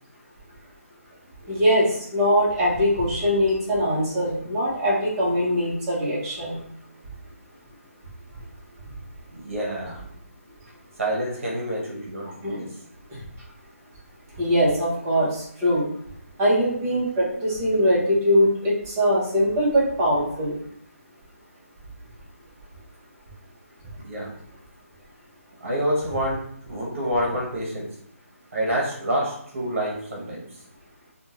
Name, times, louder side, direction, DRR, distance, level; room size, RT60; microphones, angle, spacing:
voice 1, 1.5-1.9 2.1-6.6 12.4-12.6 14.4-15.9 16.4-20.5, equal, 15° right, -7 dB, 0.8 m, -22 dB
voice 2, 9.4-10.0 11.0-12.7 24.0-24.3 25.6-27.9 28.5-30.5, equal, 60° right, -3 dB, 0.9 m, -27 dB
2.5 x 2.3 x 3.0 m, 0.67 s
hypercardioid pair, 165°, 8 cm